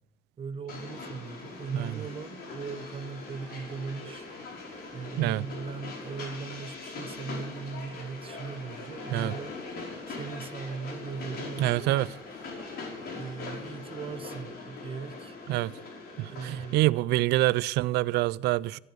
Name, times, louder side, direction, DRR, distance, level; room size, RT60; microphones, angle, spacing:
voice 1, 0.4-4.3 4.9-9.5 10.1-11.9 13.1-15.4 16.2-17.1, right 5 dB, 35° right, 1.3 m, -39 dB
Train, 0.7-16.8, left 3 dB, 65° left, 5.4 m, -41 dB
sound 1, 1.4-14.2, left 1 dB, 25° left, 7.1 m, -55 dB
voice 2, 11.6-12.1 15.5-15.7 16.2-18.8, right 17 dB, 80° right, 0.4 m, -26 dB
15.0 x 11.0 x 7.8 m
cardioid pair, 110°, 17 cm